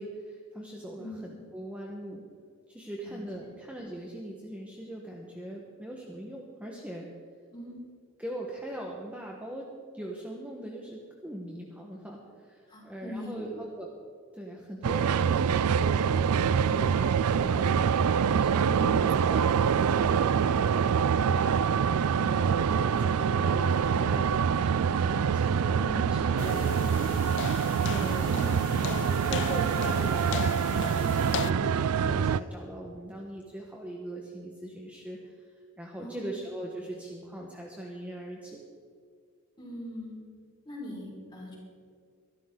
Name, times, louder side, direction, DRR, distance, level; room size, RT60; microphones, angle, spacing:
voice 1, 0.0-2.2 2.7-7.1 8.2-9.7 9.9-13.9 14.3-17.9 18.3-18.7 19.0-21.6 22.1-26.8 27.8-35.3 35.8-38.6, right 1 dB, 5° right, -2 dB, 1.3 m, -40 dB
voice 2, 3.0-3.5 7.5-7.7 12.7-13.5 18.6-19.2 25.7-26.5 28.2-28.7 36.0-36.3 39.6-40.2 40.6-41.6, left 1 dB, 20° left, -4 dB, 5.0 m, -41 dB
sound 1, 14.8-32.4, right 7 dB, 80° right, 0.4 m, -25 dB
sound 2, 26.4-31.5, left 9 dB, 55° left, 0.3 m, -38 dB
23.5 x 12.5 x 3.9 m, 2.1 s
head